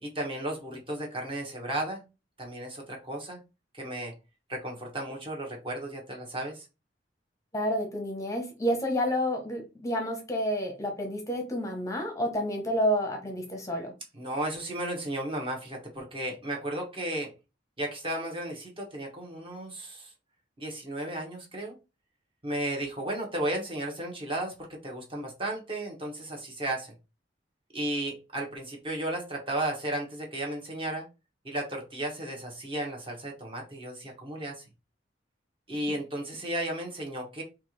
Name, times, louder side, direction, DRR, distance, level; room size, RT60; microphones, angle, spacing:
voice 1, 0.0-2.1 2.4-3.4 3.7-4.1 4.5-6.7 14.1-17.3 17.8-20.1 20.6-21.8 22.4-26.9 27.7-31.0 31.4-34.6 35.7-37.4, right 1 dB, 30° right, 1.2 m, -34 dB
voice 2, 7.5-13.9, equal, 20° left, 0.7 m, -29 dB
4.3 x 2.5 x 3.0 m
head